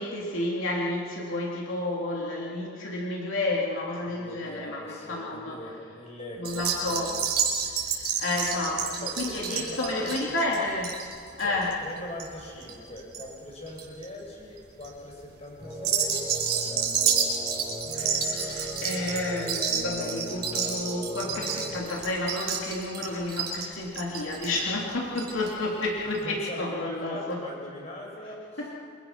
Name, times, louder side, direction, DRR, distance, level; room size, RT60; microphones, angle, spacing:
voice 1, 0.0-5.6 6.4-7.1 8.0-11.0 11.4-11.7 17.9-27.4 28.6-28.8, left 2 dB, 85° left, -3 dB, 3.3 m, -31 dB
voice 2, 4.0-7.3 7.8-8.2 8.7-10.4 11.4-17.3 26.1-28.7, left 1 dB, 35° left, -2 dB, 7.1 m, -41 dB
sound 1, 6.4-13.2 13.5-14.0 14.6-14.9 15.7-25.5 25.8-25.9 26.1-26.2, right 7 dB, 50° right, 5.1 m, -30 dB
sound 2, 15.6-21.8, equal, 5° right, 7.6 m, -38 dB
27.5 x 25.5 x 6.1 m, 2.4 s
head